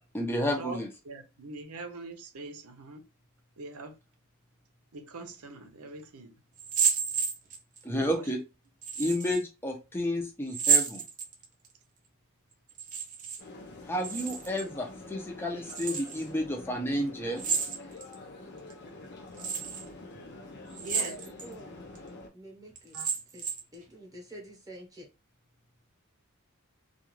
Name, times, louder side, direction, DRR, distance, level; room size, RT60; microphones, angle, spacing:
voice 1, 0.1-0.9 7.8-8.4 9.0-11.0 13.9-17.4, left 1 dB, 10° left, 0.6 m, -31 dB
voice 2, 1.0-3.0 3.6-4.0 4.9-6.3 7.9-8.3 20.8-21.2 22.9-23.1, right 3 dB, 90° right, 0.7 m, -42 dB
sound 1, 6.6-7.8 8.8-9.4 10.5-11.7 12.7-13.4 13.7-14.7 15.7-16.2 17.4-18.1 18.7-18.8 19.4-19.8 20.7-21.5 22.0-22.1 22.8-23.7, right 6 dB, 35° right, 0.6 m, -30 dB
sound 2, 13.4-22.3, left 2 dB, 50° left, 0.6 m, -47 dB
voice 3, 20.9-21.8 22.3-22.9 23.3-23.4 23.7-25.1, right 1 dB, 15° right, 0.9 m, -47 dB
2.4 x 2.4 x 3.0 m
head